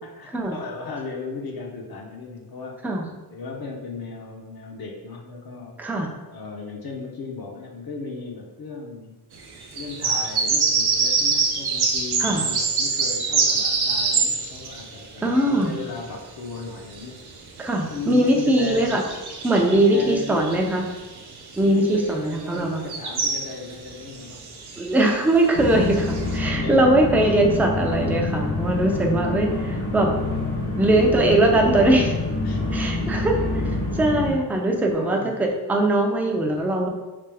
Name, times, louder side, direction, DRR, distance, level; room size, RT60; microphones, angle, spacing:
voice 1, 0.0-2.8 3.3-9.2 9.7-17.2 17.9-19.0 19.7-20.6 21.6-24.5 26.5-27.0 27.3-27.4 32.4-32.6 32.9-33.3 34.7-35.4, left 3 dB, 60° left, 0 dB, 0.7 m, -36 dB
sound 1, 9.6-16.1 16.5-26.4, right 4 dB, 70° right, 0.6 m, -26 dB
voice 2, 15.2-15.7 17.6-19.0 19.4-20.9 21.6-22.9 24.8-30.1 30.8-32.1 32.7-33.4 33.9-36.9, right 1 dB, 5° right, 1 dB, 0.4 m, -21 dB
sound 2, 25.5-34.3, left 2 dB, 80° left, 1.3 m, -26 dB
3.4 x 3.3 x 3.4 m, 1.1 s
wide cardioid pair, 150°, 41 cm